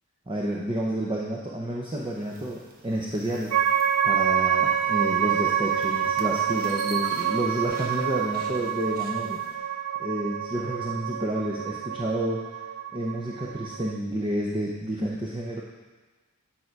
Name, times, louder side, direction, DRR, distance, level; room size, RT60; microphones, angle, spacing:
voice 1, 0.3-3.5 4.0-9.7 10.0-12.5 12.9-15.6, right 1 dB, 20° right, -3 dB, 0.7 m, -30 dB
sound 1, 1.9-9.6, right 1 dB, 40° right, 1.2 m, -46 dB
sound 2, 3.5-14.0, right 9 dB, 85° right, 0.4 m, -27 dB
sound 3, 3.9-8.9, right 1 dB, 25° left, 1.3 m, -46 dB
9.1 x 5.7 x 4.6 m, 1.3 s
head